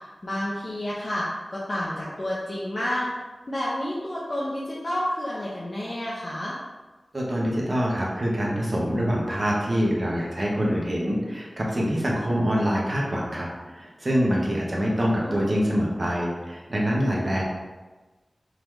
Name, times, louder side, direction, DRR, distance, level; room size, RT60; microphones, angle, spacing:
voice 1, 0.2-3.1 3.5-6.6 15.1-15.4, left 1 dB, 45° left, -6 dB, 0.7 m, -30 dB
voice 2, 7.1-17.4, equal, 50° right, -3 dB, 1.0 m, -25 dB
3.8 x 3.0 x 3.2 m, 1.2 s
wide cardioid pair, 50°, 0 cm